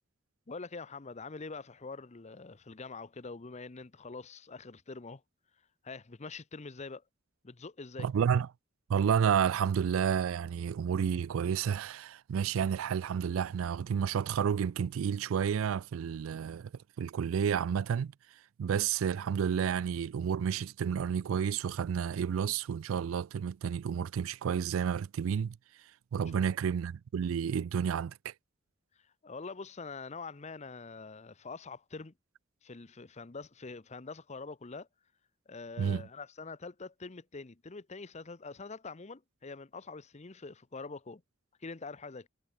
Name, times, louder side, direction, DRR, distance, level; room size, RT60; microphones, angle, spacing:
voice 1, 0.5-5.2 5.8-7.0 7.4-8.1 26.2-26.5 29.2-32.1 32.6-34.9 35.5-41.2 41.6-42.3, left 4 dB, 35° left, 0.8 m, -44 dB
voice 2, 8.0-8.5 8.9-16.7 17.0-18.1 18.6-25.6 26.1-28.3 35.8-36.1, right 7 dB, 85° right, 0.3 m, -30 dB
head